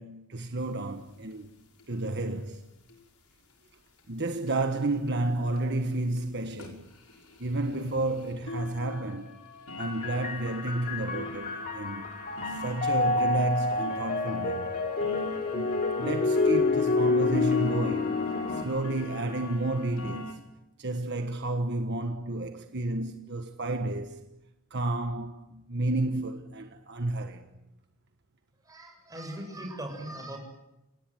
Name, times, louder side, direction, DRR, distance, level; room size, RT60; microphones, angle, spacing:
voice 1, 0.0-1.5 1.9-2.7 4.1-6.9 7.4-9.4 9.8-12.1 12.5-14.8 15.5-18.2 18.5-20.4 20.8-24.3 24.7-27.5, right 2 dB, 50° right, 1.4 m, -31 dB
sound 1, 0.6-0.7 1.0-1.1 1.3-1.4 1.8-2.1 2.9-3.0 3.5-3.6 4.0-4.1 4.5-4.6 5.1-5.2 5.6-5.7 6.2-6.3 6.6-20.3, left 2 dB, 80° left, 6.0 m, -43 dB
sound 2, 9.8-18.6, left 3 dB, 40° left, 2.7 m, -28 dB
voice 2, 28.6-30.4, right 1 dB, 15° right, 7.5 m, -39 dB
29.5 x 18.0 x 9.3 m
head